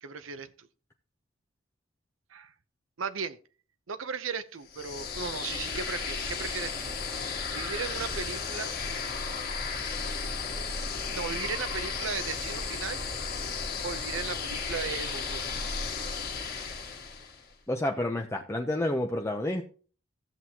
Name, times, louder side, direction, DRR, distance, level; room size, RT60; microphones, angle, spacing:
voice 1, 0.0-0.7 2.3-2.5 3.0-3.4 3.9-6.9 7.5-8.7 11.1-13.3 13.8-15.5 16.5-16.7, right 6 dB, 70° right, 0.7 m, -36 dB
sound 1, 4.7-17.4, left 5 dB, 50° left, 1.7 m, -34 dB
voice 2, 17.7-19.6, left 1 dB, 15° left, 0.6 m, -29 dB
15.0 x 7.7 x 2.8 m
head